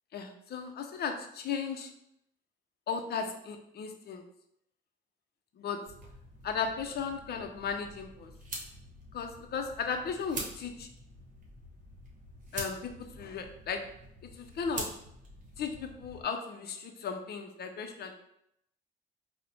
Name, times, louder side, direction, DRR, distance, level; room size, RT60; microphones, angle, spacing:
voice 1, 0.1-1.9 2.9-4.2 5.6-5.8 6.4-8.3 9.1-10.9 12.5-13.8 14.2-14.9 15.6-18.1, left 6 dB, 55° left, 5 dB, 0.5 m, -36 dB
sound 1, 5.9-16.2, right 1 dB, 40° right, 0.9 m, -45 dB
3.8 x 2.1 x 2.9 m, 0.76 s
cardioid pair, 90°, 20 cm